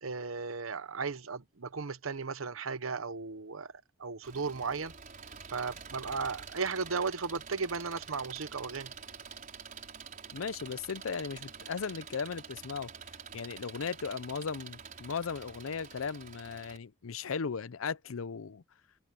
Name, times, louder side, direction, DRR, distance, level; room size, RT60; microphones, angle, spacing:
voice 1, 0.0-3.7 4.0-4.9 5.5-8.9, right 4 dB, 85° right, 1.0 m, -35 dB
Engine, 4.2-16.8, right 6 dB, 40° right, 5.1 m, -47 dB
voice 2, 10.3-12.9 13.3-18.6, left 5 dB, 85° left, 0.6 m, -37 dB
head